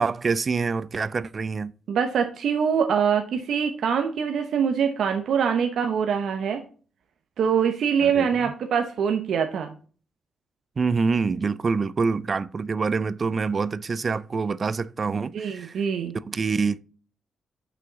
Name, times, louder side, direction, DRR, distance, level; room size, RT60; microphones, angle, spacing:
voice 1, 0.0-1.7 8.0-8.5 10.8-15.8 16.3-16.8, right 4 dB, 35° right, 0.4 m, -26 dB
voice 2, 1.9-6.6 7.4-9.7 15.1-16.1, right 7 dB, 70° right, 0.8 m, -24 dB
6.0 x 5.8 x 3.9 m
cardioid pair, 110°, 0 cm